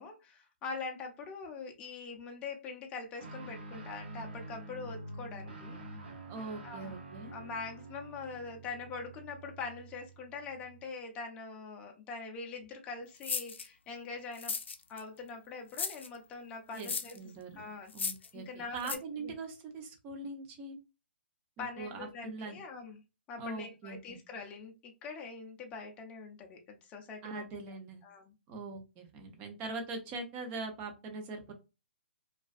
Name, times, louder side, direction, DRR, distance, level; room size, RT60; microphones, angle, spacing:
voice 1, 0.0-5.8 6.6-6.9 7.3-14.5 14.9-17.2 17.6-17.9 18.3-19.3 21.6-23.0 23.3-27.4 28.0-28.3, left 4 dB, 20° left, 3 dB, 0.5 m, -43 dB
Guitar, 3.2-10.9, right 2 dB, 60° right, 1.0 m, -47 dB
voice 2, 6.3-7.3 16.7-17.6 17.9-20.8 21.6-22.6 23.4-24.2 27.2-28.0 28.5-31.5, right 3 dB, 25° right, 4 dB, 0.6 m, -42 dB
sound 1, 13.2-13.7 14.3-15.0 15.7-16.1 16.8-17.2 17.9-18.3 18.8-19.0, left 5 dB, 85° left, 0.4 m, -35 dB
2.3 x 2.3 x 2.4 m, 0.28 s
hypercardioid pair, 145°, 6 cm